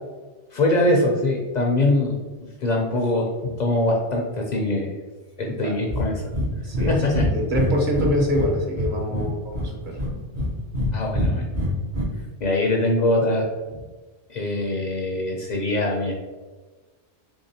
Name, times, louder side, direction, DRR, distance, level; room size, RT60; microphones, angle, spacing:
voice 1, 0.5-2.2 2.6-4.9 5.4-6.2 6.9-7.3 9.1-9.3 10.9-11.4 12.4-13.5 14.3-16.1, left 1 dB, 55° left, 0 dB, 0.5 m, -23 dB
Breathing, 5.9-6.1 6.3-6.5 6.7-6.9 7.1-8.5 8.7-9.7 10.0-10.9 11.1-12.0, left 1 dB, 70° right, 1.2 m, -24 dB
voice 2, 6.6-10.0, equal, 50° right, 0 dB, 0.9 m, -25 dB
3.6 x 3.3 x 2.7 m, 1.3 s
omnidirectional pair, 1.2 m